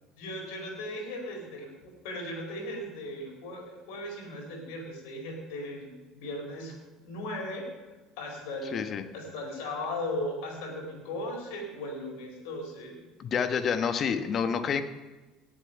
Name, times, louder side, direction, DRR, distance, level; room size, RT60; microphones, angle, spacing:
voice 1, 0.2-6.8 7.0-7.9 8.2-13.0, left 1 dB, 70° left, 1 dB, 4.1 m, -37 dB
voice 2, 8.7-9.0 13.2-14.8, left 6 dB, 45° left, 10 dB, 1.1 m, -28 dB
18.0 x 7.3 x 5.6 m, 1.2 s
hypercardioid pair, 65°, 0 cm